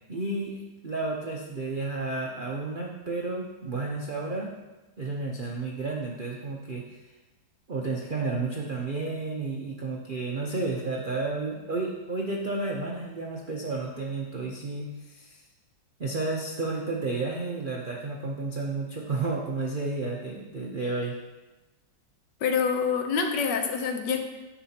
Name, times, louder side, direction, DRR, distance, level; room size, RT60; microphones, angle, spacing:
voice 1, 0.1-4.5 5.0-7.0 7.7-15.4 16.0-21.2, right 3 dB, 55° right, -2 dB, 0.5 m, -32 dB
voice 2, 22.4-24.2, left 6 dB, 75° left, 4 dB, 1.4 m, -26 dB
9.9 x 6.7 x 2.8 m, 1.1 s
omnidirectional pair, 2.0 m